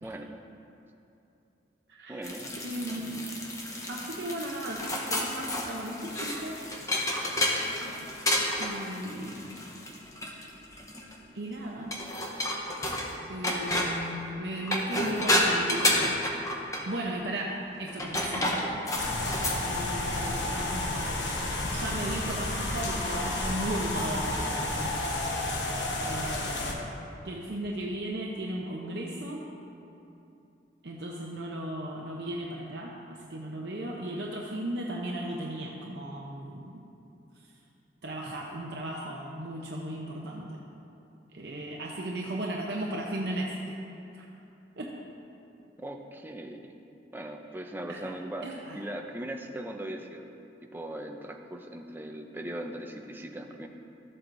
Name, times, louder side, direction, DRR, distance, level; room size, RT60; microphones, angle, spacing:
voice 1, 0.0-0.4 2.1-2.5 45.8-46.6 47.1-50.3 50.7-53.7, right 1 dB, 10° right, 3 dB, 0.5 m, -39 dB
voice 2, 1.9-3.3 3.9-6.6 8.6-9.7 11.3-12.0 13.3-16.2 16.9-18.8 19.7-21.2 21.7-25.1 26.0-26.9 27.2-29.5 30.8-36.8 38.0-40.6 41.3-43.5 44.1-44.3 44.8-45.0 47.9-48.0 48.4-48.8, right 1 dB, 65° right, -2 dB, 0.7 m, -36 dB
sound 1, 2.2-11.1 11.9-13.2 13.4-14.0 14.6-16.9 17.9-19.6, left 1 dB, 20° left, 0.8 m, -30 dB
sound 2, 18.9-26.7, left 2 dB, 75° left, 1.1 m, -31 dB
14.0 x 7.6 x 2.6 m, 2.8 s
head